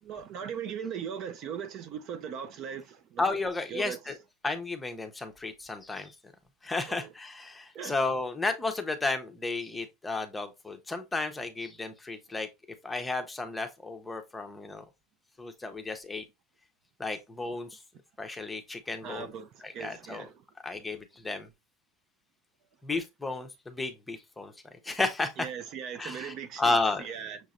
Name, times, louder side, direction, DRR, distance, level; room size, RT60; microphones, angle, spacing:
voice 1, 0.0-3.3 3.7-4.0 6.9-7.1 7.7-7.9 19.0-20.4 25.4-27.4, right 7 dB, 40° right, 0.5 m, -39 dB
voice 2, 3.2-4.2 4.4-6.1 6.6-12.5 12.8-14.8 15.4-16.2 17.0-17.8 18.2-19.3 19.6-20.3 20.6-21.5 22.8-24.5 24.8-25.3 26.0-27.0, left 3 dB, 10° left, 0.7 m, -33 dB
6.4 x 3.1 x 2.5 m
supercardioid pair, 165°, 0 cm